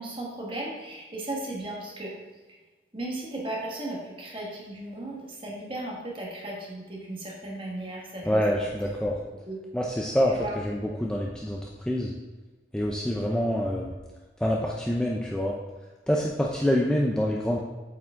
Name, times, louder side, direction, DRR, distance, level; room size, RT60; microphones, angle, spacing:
voice 1, 0.0-2.2 2.9-8.4 9.5-9.6 10.3-10.5, right 1 dB, 30° right, -3 dB, 1.5 m, -36 dB
voice 2, 8.3-9.2 9.7-12.1 12.7-13.9 14.4-15.6 16.1-17.6, equal, 5° left, -2 dB, 0.4 m, -26 dB
8.1 x 4.8 x 3.7 m, 1.3 s
head